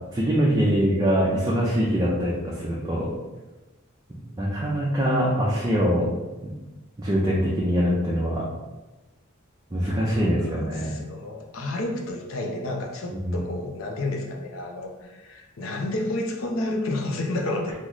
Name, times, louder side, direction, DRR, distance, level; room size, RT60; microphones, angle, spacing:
voice 1, 0.1-3.1 4.4-6.1 6.4-6.5 7.0-8.4 9.7-10.9 13.2-13.4, equal, 20° right, -5 dB, 0.5 m, -23 dB
voice 2, 10.2-17.7, left 2 dB, 70° left, 2 dB, 0.5 m, -30 dB
3.1 x 2.0 x 3.8 m, 1.1 s
head